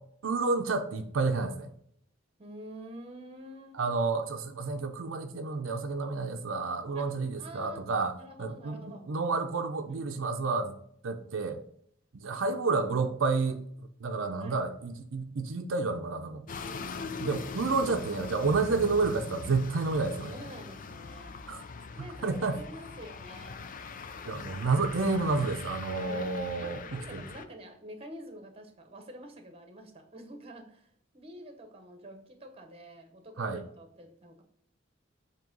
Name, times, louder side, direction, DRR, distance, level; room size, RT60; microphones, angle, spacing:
voice 1, 0.2-1.7 3.7-8.1 8.4-10.7 11.0-11.6 12.1-13.6 14.0-16.5 17.2-20.4 21.5-21.6 22.2-22.6 24.3-27.2 33.4-33.6, right 4 dB, 85° right, 0.6 m, -30 dB
voice 2, 2.4-3.8 6.9-7.1 7.4-7.9 8.1-9.1 9.9-10.4 14.4-14.6 16.6-17.2 20.3-21.4 22.0-23.7 26.0-30.9 31.1-34.4, right 1 dB, 30° right, 1.1 m, -48 dB
sound 1, 16.5-27.5, left 4 dB, 45° left, 0.5 m, -42 dB
7.6 x 3.0 x 5.2 m
head